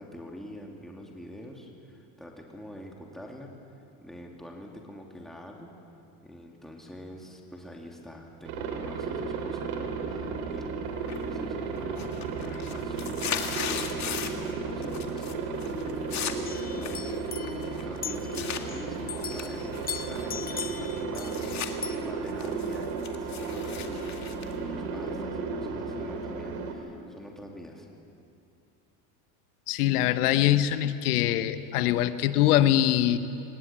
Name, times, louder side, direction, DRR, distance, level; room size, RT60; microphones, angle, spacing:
voice 1, 0.0-5.7 6.2-27.9, equal, ahead, 0 dB, 3.1 m, -45 dB
Aircraft, 8.5-26.7, right 4 dB, 70° right, 3.7 m, -34 dB
sound 1, 11.1-11.5 11.8-14.5 14.8-15.3 15.6-18.6 19.2-21.7 22.1-25.3, left 8 dB, 35° left, 2.3 m, -37 dB
sound 2, 16.4-18.8 19.1-21.5 21.8-22.0, left 7 dB, 20° left, 1.2 m, -39 dB
voice 2, 29.7-33.2, left 12 dB, 85° left, 12 dB, 1.3 m, -23 dB
23.5 x 20.5 x 9.0 m, 2.6 s
supercardioid pair, 100°, 44 cm